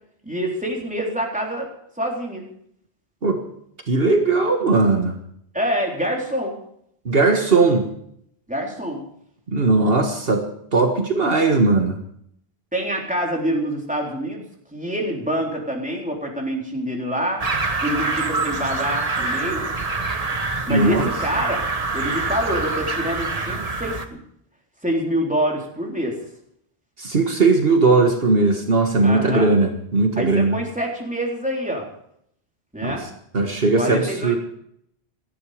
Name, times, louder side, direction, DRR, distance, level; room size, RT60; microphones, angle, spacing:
voice 1, 0.2-1.7 2.0-2.5 5.5-6.6 8.5-9.0 12.7-14.4 14.7-17.5 17.8-19.7 20.7-21.6 21.9-24.0 24.8-26.2 29.0-29.5 30.2-31.9 32.7-33.1 33.8-34.4, equal, 5° right, -1 dB, 3.8 m, -26 dB
voice 2, 3.9-5.1 7.0-7.9 9.5-10.4 10.7-12.0 20.7-21.0 27.0-30.6 32.8-32.9 33.3-34.4, right 3 dB, 65° right, 4 dB, 1.8 m, -18 dB
sound 1, 17.4-24.1, right 3 dB, 35° right, 1.3 m, -25 dB
18.5 x 13.5 x 5.1 m, 0.70 s
omnidirectional pair, 1.0 m